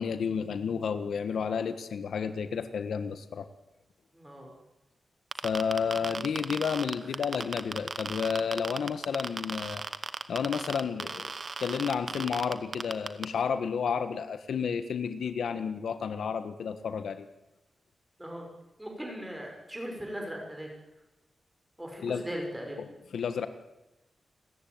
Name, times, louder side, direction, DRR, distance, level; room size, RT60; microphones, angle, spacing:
voice 1, 0.0-3.5 5.4-9.8 10.3-11.3 11.6-17.3 22.0-22.2 22.8-23.5, left 6 dB, 80° left, 10 dB, 1.5 m, -31 dB
voice 2, 4.1-4.5 18.2-18.5 18.8-20.7 21.8-22.8, equal, 5° right, 1 dB, 5.7 m, -38 dB
sound 1, 5.3-13.2, right 4 dB, 35° right, 1.0 m, -35 dB
30.0 x 14.5 x 9.5 m, 1.0 s
wide cardioid pair, 180°, 0 cm